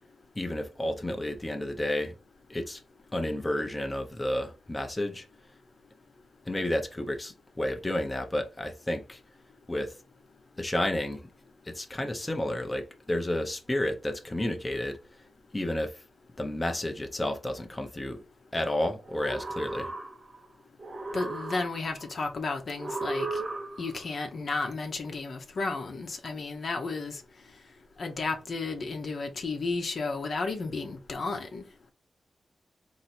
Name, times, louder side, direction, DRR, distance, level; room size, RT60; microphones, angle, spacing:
voice 1, 0.4-2.1 2.5-2.8 3.1-5.3 6.4-9.2 9.7-10.0 10.6-11.2 11.6-15.0 15.5-16.0 16.4-18.2 18.5-19.9, left 1 dB, 20° left, 0.9 m, -31 dB
sound 1, 19.0-20.5 20.8-22.1 22.8-24.1, right 2 dB, 40° right, 1.2 m, -36 dB
voice 2, 21.1-23.4 23.8-27.2 28.0-31.7, left 3 dB, 60° left, 1.0 m, -33 dB
3.9 x 3.0 x 4.4 m
cardioid pair, 70°, 0 cm